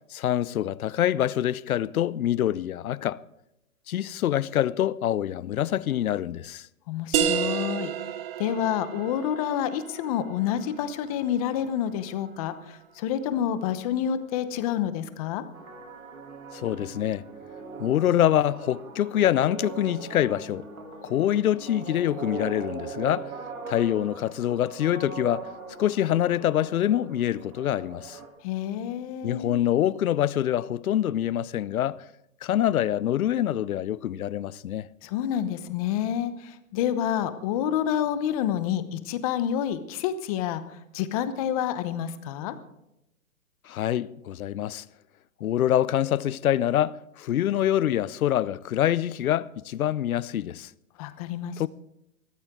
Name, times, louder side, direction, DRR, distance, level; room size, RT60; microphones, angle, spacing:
voice 1, 0.0-3.2 3.9-6.7 16.5-17.2 17.8-20.7 21.0-23.3 23.7-25.5 25.8-28.2 29.2-32.0 32.4-34.9 43.7-44.8 45.4-50.7 51.6-51.7, left 11 dB, 80° left, 0.7 m, -25 dB
voice 2, 6.9-7.9 8.4-15.4 28.4-29.6 35.0-40.6 40.9-42.5 51.0-51.6, left 10 dB, 25° left, 0.9 m, -28 dB
sound 1, 7.1-12.5, right 8 dB, 40° right, 1.2 m, -32 dB
sound 2, 15.5-28.3, right 5 dB, 75° right, 3.4 m, -40 dB
20.0 x 14.0 x 3.7 m
hypercardioid pair, 155°, 42 cm